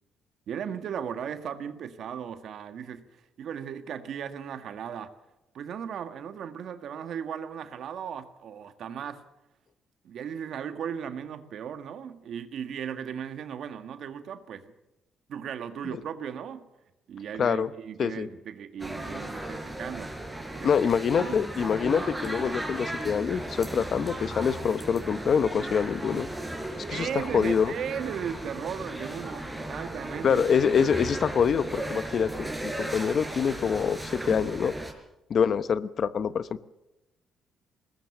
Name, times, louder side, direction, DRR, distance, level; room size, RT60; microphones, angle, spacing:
voice 1, 0.5-5.1 5.5-9.2 10.0-14.7 15.3-16.7 17.1-20.1 20.5-20.9 21.2-21.4 26.9-30.4, right 8 dB, 70° right, 1.7 m, -36 dB
voice 2, 17.4-17.7 18.0-18.3 20.6-26.3 26.9-27.1 27.3-27.7 30.2-34.7 35.3-36.6, left 7 dB, 55° left, 1.0 m, -25 dB
sound 1, 18.8-34.9, right 1 dB, 5° right, 4.8 m, -36 dB
21.0 x 19.0 x 7.3 m
cardioid pair, 90°, 0 cm